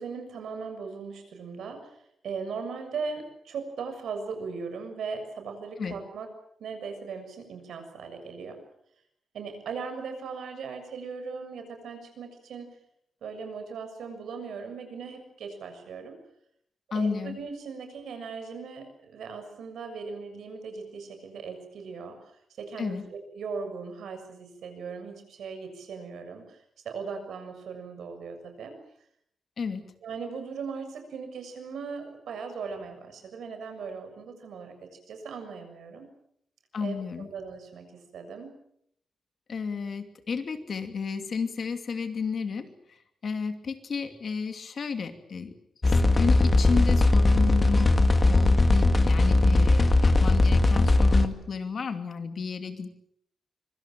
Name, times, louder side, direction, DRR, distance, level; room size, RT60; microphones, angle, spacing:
voice 1, 0.0-2.0 2.2-6.3 6.6-8.6 9.3-12.7 13.2-16.2 16.9-22.2 22.6-26.6 26.8-28.8 30.0-36.1 36.8-38.5, right 5 dB, 80° right, 7 dB, 6.8 m, -38 dB
voice 2, 16.9-17.4 22.8-23.1 29.6-29.9 36.7-37.3 39.5-43.0 43.2-45.5 45.8-52.9, left 5 dB, 45° left, 7 dB, 2.8 m, -32 dB
sound 1, 45.8-51.3, left 2 dB, 20° left, 1.9 m, -20 dB
25.5 x 24.5 x 7.8 m, 0.71 s
wide cardioid pair, 165°, 0 cm